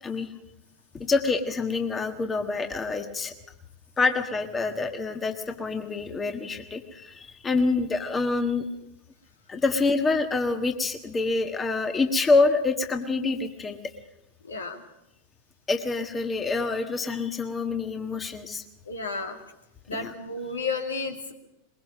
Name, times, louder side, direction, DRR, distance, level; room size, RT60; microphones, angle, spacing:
voice 1, 0.9-3.3 4.0-8.7 9.5-13.8 15.7-18.6 19.9-20.1, left 3 dB, 15° left, 6 dB, 1.5 m, -26 dB
voice 2, 14.4-14.8 18.9-19.4 19.9-21.3, left 3 dB, 75° left, 4 dB, 2.3 m, -32 dB
22.0 x 21.5 x 5.4 m, 0.87 s
figure-of-eight pair, 90°, 0 cm